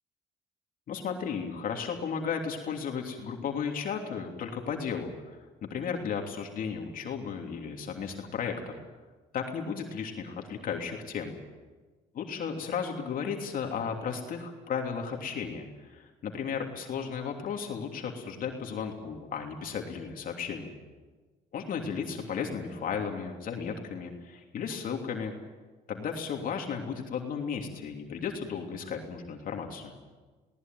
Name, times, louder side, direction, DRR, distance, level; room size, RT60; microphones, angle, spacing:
voice 1, 0.9-5.4 5.7-8.8 9.3-11.3 12.2-20.7 21.5-25.3 25.9-29.9, left 6 dB, 55° left, 2 dB, 3.1 m, -34 dB
20.5 x 18.5 x 9.4 m, 1.3 s
cardioid pair, 110°, 17 cm